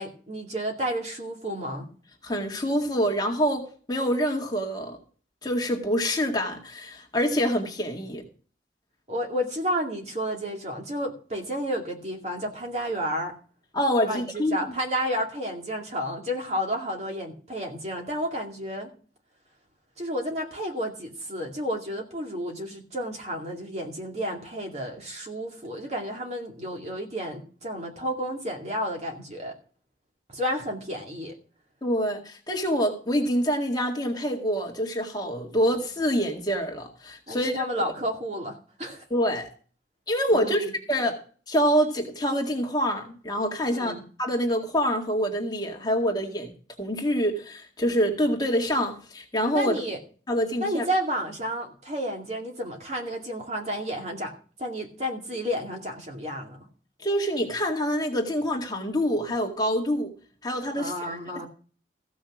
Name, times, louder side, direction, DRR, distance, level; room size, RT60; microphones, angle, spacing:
voice 1, 0.0-1.9 9.1-13.3 14.0-18.9 20.0-29.5 30.3-31.3 37.3-39.0 40.3-40.7 43.7-44.0 49.5-50.0 50.6-54.3 54.6-56.6 60.7-61.5, equal, 40° right, 2.4 m, -31 dB
voice 2, 2.2-5.0 5.4-8.2 13.7-14.6 31.8-37.6 39.1-39.5 40.1-41.2 41.5-43.9 44.2-46.5 46.8-49.8 50.3-50.8 57.0-60.1 60.4-61.2, equal, 25° left, 2.0 m, -26 dB
15.0 x 6.2 x 6.1 m
head